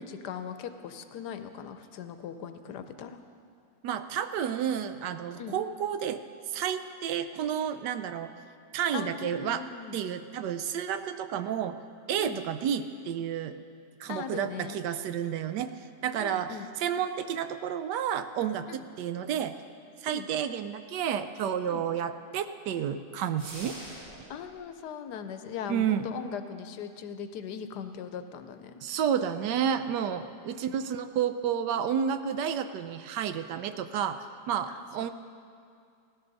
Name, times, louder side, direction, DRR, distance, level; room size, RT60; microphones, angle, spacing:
voice 1, 0.0-3.2 5.4-5.6 8.9-10.0 12.2-12.4 14.1-14.8 16.2-16.7 18.7-18.8 20.1-20.3 21.7-21.8 24.3-28.8 30.2-30.8 34.7-34.8, left 7 dB, 75° left, 9 dB, 1.2 m, -39 dB
voice 2, 3.8-6.2 6.5-8.3 8.7-9.7 9.9-11.8 12.1-13.6 14.0-15.7 16.0-19.5 20.0-23.8 25.7-26.0 28.8-34.2 34.5-35.1, right 8 dB, 75° right, 10 dB, 1.2 m, -31 dB
sound 1, 23.4-24.4, equal, 25° right, 4.1 m, -44 dB
16.5 x 13.5 x 4.0 m, 2.4 s
omnidirectional pair, 1.9 m